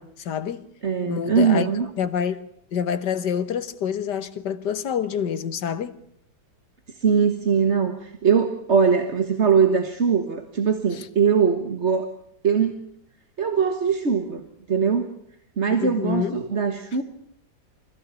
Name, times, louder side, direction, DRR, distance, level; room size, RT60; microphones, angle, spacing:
voice 1, 0.0-0.7 1.1-1.7 2.0-2.4 2.7-6.0 11.0-11.1 15.8-16.4, left 8 dB, 90° left, 1.9 m, -27 dB
voice 2, 0.8-1.9 6.9-12.1 12.4-12.8 13.4-14.4 14.7-15.1 15.6-17.0, right 6 dB, 45° right, 1.7 m, -21 dB
25.0 x 16.5 x 8.3 m
omnidirectional pair, 1.8 m